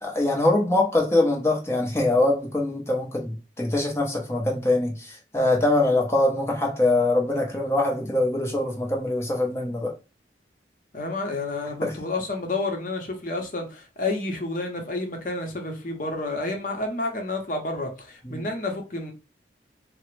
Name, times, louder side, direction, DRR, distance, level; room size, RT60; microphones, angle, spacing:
voice 1, 0.0-9.9 11.8-11.9 18.2-18.4, left 2 dB, 15° left, 0.6 m, -23 dB
voice 2, 10.9-19.1, left 2 dB, 50° left, 0.8 m, -30 dB
3.4 x 2.0 x 3.1 m
head